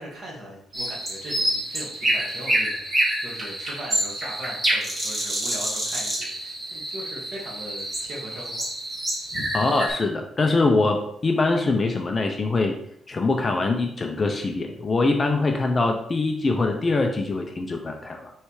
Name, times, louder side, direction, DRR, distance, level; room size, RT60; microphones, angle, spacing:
voice 1, 0.0-8.7 9.3-9.5, right 1 dB, 35° right, -2 dB, 1.7 m, -39 dB
sound 1, 0.7-9.9, right 1 dB, 20° right, 1.4 m, -27 dB
voice 2, 9.5-12.7 13.1-18.3, left 3 dB, 20° left, 3 dB, 0.5 m, -23 dB
6.4 x 3.2 x 4.8 m, 0.72 s
cardioid pair, 165°, 0 cm